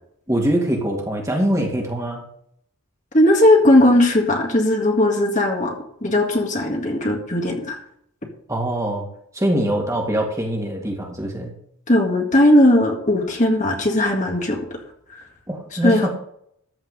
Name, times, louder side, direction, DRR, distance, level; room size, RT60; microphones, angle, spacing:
voice 1, 0.3-2.2 8.5-9.1 9.3-11.5 15.5-16.1, right 1 dB, 15° right, 0 dB, 2.2 m, -23 dB
voice 2, 3.1-5.7 6.0-7.8 11.9-14.6 15.8-16.1, left 1 dB, 35° left, 1 dB, 1.9 m, -17 dB
14.0 x 4.8 x 8.1 m, 0.68 s
head